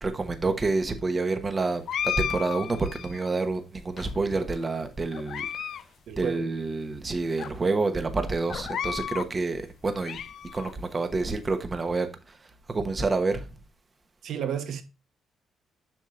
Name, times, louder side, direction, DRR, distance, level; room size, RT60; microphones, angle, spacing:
voice 1, 0.0-5.5 6.2-10.2 10.5-12.4 12.7-13.5, right 3 dB, 30° right, 1.1 m, -28 dB
sound 1, 1.9-3.3 4.0-4.6 5.1-5.8 6.1-6.2 6.9-7.0 7.4-7.5 8.5-9.3 9.8-10.7, left 9 dB, 65° left, 0.4 m, -33 dB
voice 2, 6.1-6.5 14.2-14.8, right 8 dB, 70° right, 1.0 m, -31 dB
7.4 x 6.2 x 2.5 m
cardioid pair, 90°, 0 cm